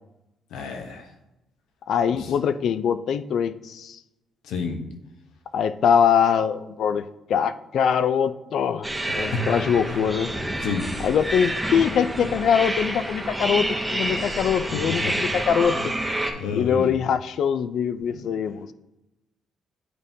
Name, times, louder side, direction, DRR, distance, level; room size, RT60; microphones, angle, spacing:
voice 1, 0.5-1.0 2.1-2.2 4.5-4.8 9.9-10.0 10.6-10.9 14.9-15.1 16.3-17.0 18.1-18.3, left 5 dB, 90° left, 4 dB, 0.9 m, -30 dB
voice 2, 1.9-4.0 5.5-8.9 9.2-10.3 11.0-15.9 16.5-18.7, left 7 dB, 65° left, 13 dB, 0.3 m, -23 dB
sound 1, 8.8-16.3, right 1 dB, 10° right, 0.6 m, -28 dB
9.5 x 3.6 x 2.7 m, 0.95 s
cardioid pair, 125°, 0 cm